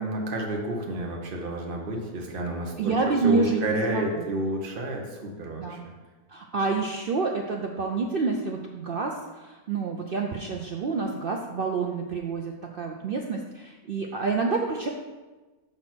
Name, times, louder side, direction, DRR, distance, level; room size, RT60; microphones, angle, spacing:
voice 1, 0.0-5.9, right 1 dB, 40° right, 1 dB, 1.1 m, -30 dB
voice 2, 2.8-4.3 5.5-5.8 6.3-9.1 9.4-14.9, right 4 dB, 75° right, 1 dB, 0.5 m, -28 dB
5.9 x 4.3 x 6.1 m, 1.2 s
omnidirectional pair, 1.6 m